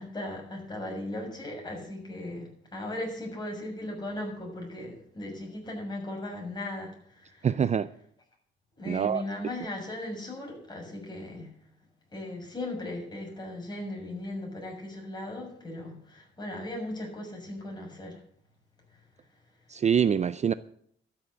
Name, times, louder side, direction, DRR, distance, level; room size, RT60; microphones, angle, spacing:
voice 1, 0.0-7.9 8.8-11.5 12.1-18.2 18.9-19.0, left 1 dB, 20° left, 6.6 m, -38 dB
voice 2, 7.4-7.9 8.9-9.2 19.7-20.5, right 7 dB, 35° right, 0.5 m, -25 dB
13.0 x 7.1 x 8.0 m
cardioid pair, 90°, 20 cm